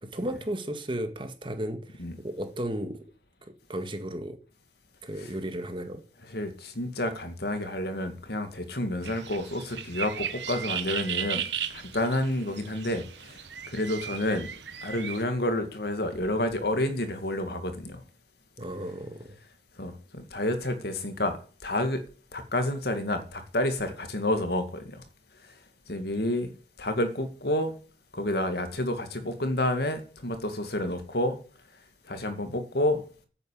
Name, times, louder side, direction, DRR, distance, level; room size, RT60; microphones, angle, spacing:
voice 1, 0.0-3.0 3.4-4.4 5.0-6.0 18.6-19.4, right 1 dB, 30° right, 1.8 m, -34 dB
voice 2, 6.3-14.5 14.8-18.0 19.8-22.0 22.3-25.0 25.9-26.5 26.8-27.8 28.1-31.4 32.0-33.0, left 1 dB, 60° left, 2.3 m, -29 dB
sound 1, 9.0-15.2, right 9 dB, 80° right, 1.4 m, -36 dB
9.8 x 9.1 x 8.6 m
head